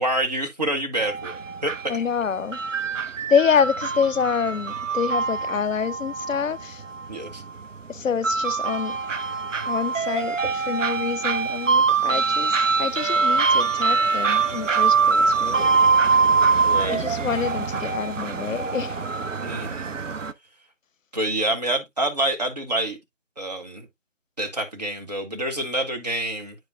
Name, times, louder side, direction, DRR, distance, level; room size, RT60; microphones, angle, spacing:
voice 1, 0.0-1.9 7.1-7.4 10.4-10.5 16.6-17.0 19.4-19.9 21.1-23.0 23.4-23.9 24.4-26.5, right 1 dB, 35° right, 1.2 m, -27 dB
sound 1, 1.0-20.3, right 5 dB, 75° right, 0.7 m, -23 dB
voice 2, 1.9-2.6 3.3-6.8 7.9-9.0 9.6-15.7 16.9-19.0, left 6 dB, 80° left, 0.6 m, -26 dB
9.1 x 5.1 x 2.2 m
figure-of-eight pair, 160°, 38 cm